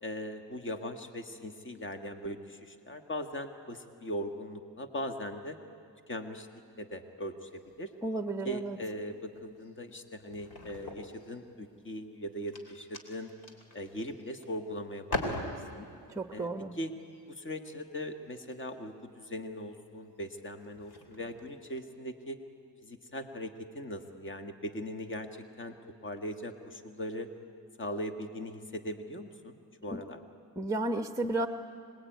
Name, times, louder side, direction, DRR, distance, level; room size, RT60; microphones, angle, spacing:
voice 1, 0.0-5.6 6.1-6.5 6.8-7.9 8.4-13.3 13.7-15.8 16.3-16.9 17.3-22.4 22.8-25.7 26.0-27.3 27.8-30.2, equal, 25° left, 6 dB, 1.8 m, -40 dB
sound 1, 7.5-8.2 8.6-9.0 9.3-11.7 12.2-14.6 14.9-16.0 17.0-17.2 18.4-18.6 19.4-19.6 20.2-20.3 20.6-21.6, left 2 dB, 55° left, 3.6 m, -41 dB
voice 2, 8.0-8.8 16.2-16.8 29.9-30.0 30.6-31.5, right 2 dB, 10° right, 7 dB, 1.1 m, -32 dB
25.5 x 21.0 x 9.3 m, 2.4 s
cardioid pair, 85°, 43 cm